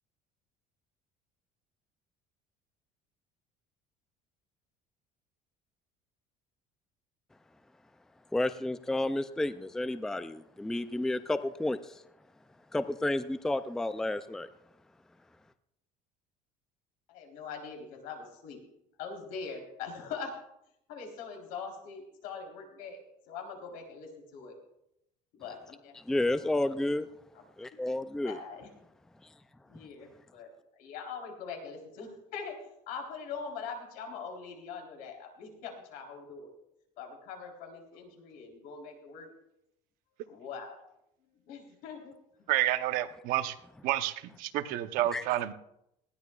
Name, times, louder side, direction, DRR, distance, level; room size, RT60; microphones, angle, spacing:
voice 1, 8.3-11.8 12.7-14.5 26.1-27.1 27.6-28.4 45.1-45.2, left 1 dB, 5° left, 11 dB, 0.4 m, -31 dB
voice 2, 17.1-18.7 19.0-20.3 20.9-23.0 23.3-24.6 25.3-26.2 27.3-27.4 28.2-28.7 29.7-36.5 37.0-39.3 40.3-40.8 41.5-42.5, left 5 dB, 75° left, 2 dB, 3.8 m, -42 dB
voice 3, 42.5-43.5 43.8-45.5, right 13 dB, 75° right, 10 dB, 0.9 m, -29 dB
20.0 x 15.5 x 2.4 m, 0.81 s
cardioid pair, 145°, 15 cm